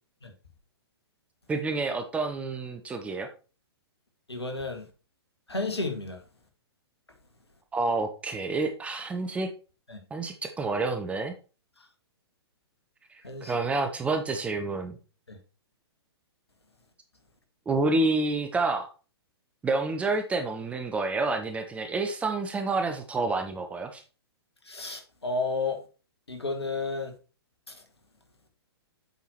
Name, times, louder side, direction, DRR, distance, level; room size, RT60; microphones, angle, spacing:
voice 1, 1.5-3.3 7.7-9.5 10.1-11.3 13.5-15.0 17.7-18.9 19.6-24.0, right 3 dB, 10° right, 0.7 m, -28 dB
voice 2, 4.3-4.9 5.5-6.2 9.9-10.0 13.2-13.5 15.3-15.4 24.7-25.8 26.3-27.1, left 3 dB, 75° left, 2.0 m, -32 dB
7.9 x 4.8 x 4.3 m
figure-of-eight pair, 115°, 14 cm